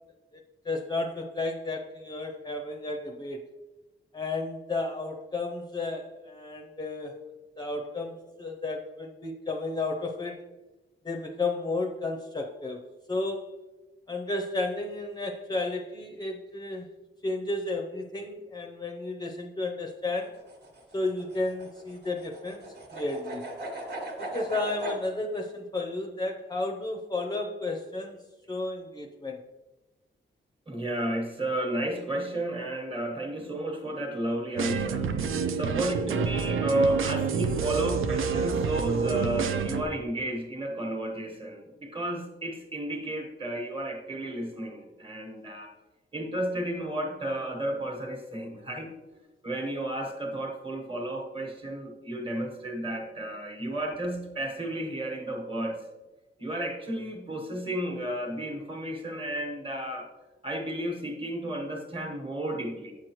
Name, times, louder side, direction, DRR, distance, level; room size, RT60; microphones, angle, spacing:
voice 1, 0.3-3.4 4.1-7.2 7.6-10.4 11.0-12.8 13.1-13.5 14.1-16.9 17.2-20.3 20.9-22.6 22.9-23.5 24.2-28.2 28.5-29.4, left 2 dB, 20° left, 1 dB, 0.5 m, -32 dB
sound 1, 20.2-25.0, right 1 dB, 55° right, 1.3 m, -39 dB
voice 2, 30.7-35.1 35.5-45.7 46.1-48.9 49.4-55.8 56.4-60.1 60.4-62.9, right 1 dB, 25° right, 3 dB, 1.2 m, -32 dB
sound 2, 34.6-39.8, right 5 dB, 90° right, 0.5 m, -28 dB
8.4 x 6.4 x 3.0 m, 1.1 s
wide cardioid pair, 160°, 20 cm